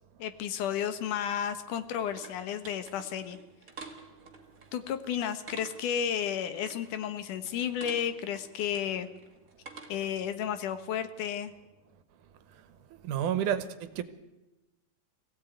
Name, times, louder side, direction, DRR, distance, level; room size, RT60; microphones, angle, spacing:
voice 1, 0.2-3.4 4.7-9.1 9.9-11.5, left 9 dB, 75° left, 2.8 m, -32 dB
sound 1, 1.4-10.2, right 4 dB, 35° right, 1.6 m, -50 dB
voice 2, 12.9-14.0, right 9 dB, 75° right, 2.6 m, -30 dB
23.0 x 16.0 x 9.2 m
omnidirectional pair, 3.7 m